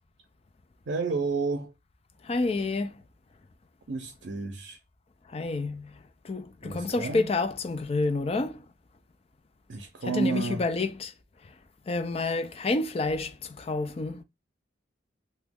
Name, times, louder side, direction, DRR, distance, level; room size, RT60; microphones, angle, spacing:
voice 1, 0.9-1.7 3.9-4.8 6.6-7.3 9.7-10.7, right 4 dB, 70° right, 0.5 m, -31 dB
voice 2, 2.2-3.0 5.3-8.7 10.0-11.1 11.4-11.5 11.9-14.2, left 3 dB, 30° left, 0.4 m, -29 dB
3.0 x 2.2 x 3.5 m
head